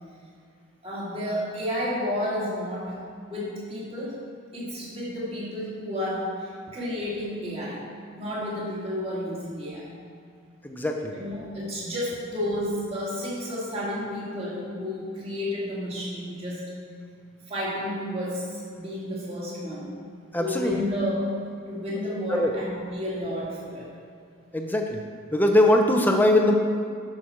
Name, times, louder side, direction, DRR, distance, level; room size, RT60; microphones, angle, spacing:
voice 1, 0.8-3.0 3.3-4.2 4.5-7.8 8.1-9.9 11.1-16.6 17.5-19.9 20.4-23.9, left 1 dB, 25° right, -6 dB, 2.4 m, -31 dB
voice 2, 10.6-11.1 20.3-20.7 22.3-22.5 24.5-25.0 25.3-26.5, left 1 dB, 10° left, 3 dB, 0.6 m, -21 dB
12.0 x 6.0 x 4.4 m, 2.2 s
head